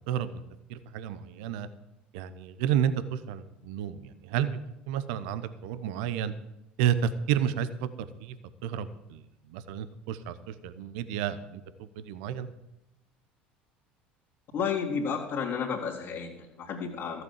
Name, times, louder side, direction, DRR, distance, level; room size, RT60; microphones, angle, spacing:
voice 1, 0.1-0.4 0.7-1.7 2.1-4.6 4.9-6.3 6.8-8.4 8.6-9.2 9.5-12.5, right 9 dB, 70° right, 13 dB, 0.8 m, -31 dB
voice 2, 14.5-17.2, left 6 dB, 55° left, -4 dB, 2.5 m, -32 dB
14.5 x 7.8 x 7.4 m, 0.90 s
hypercardioid pair, 70°, 5 cm